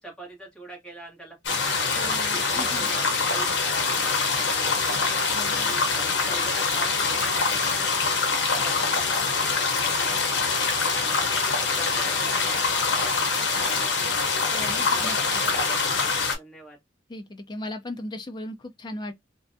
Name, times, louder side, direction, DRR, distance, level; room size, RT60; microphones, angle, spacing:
voice 1, 0.0-5.0 5.5-7.6 8.5-10.6 11.0-14.2 14.8-16.8, right 2 dB, 5° left, 1.1 m, -44 dB
sound 1, 1.4-16.3, left 4 dB, 65° left, 0.8 m, -24 dB
voice 2, 2.0-2.9 5.3-5.8 14.5-15.2 17.1-19.1, left 1 dB, 25° left, 0.4 m, -37 dB
2.5 x 2.2 x 2.5 m
head